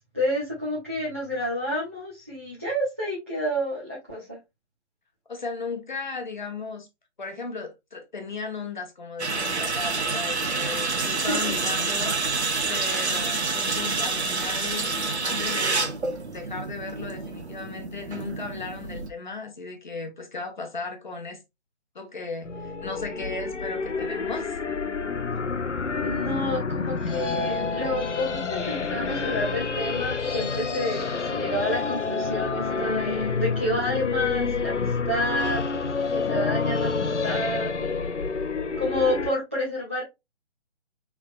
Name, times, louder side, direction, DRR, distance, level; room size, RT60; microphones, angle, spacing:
voice 1, 0.1-4.4 11.0-11.5 26.0-38.1 38.8-40.0, left 1 dB, 10° right, 0.5 m, -29 dB
voice 2, 5.3-6.9 7.2-14.9 15.2-15.9 16.3-21.4 21.9-24.6, left 4 dB, 40° left, 0.9 m, -36 dB
sound 1, 9.2-19.1, right 3 dB, 65° right, 1.0 m, -28 dB
sound 2, 22.4-39.3, left 4 dB, 85° left, 0.6 m, -28 dB
4.3 x 3.4 x 2.4 m
figure-of-eight pair, 145°, 35 cm